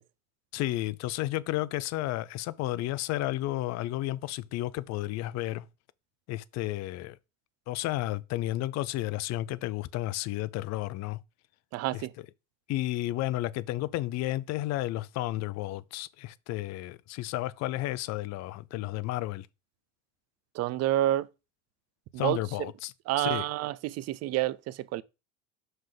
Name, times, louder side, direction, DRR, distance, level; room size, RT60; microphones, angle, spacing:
voice 1, 0.5-5.7 6.3-7.2 7.7-11.2 11.9-12.0 12.7-19.5 22.2-23.4, left 16 dB, 50° left, 0.5 m, -32 dB
voice 2, 11.7-12.1 20.5-21.3 22.1-22.4 23.1-25.0, right 14 dB, 45° right, 0.5 m, -28 dB
5.9 x 5.4 x 3.8 m
supercardioid pair, 110°, 35 cm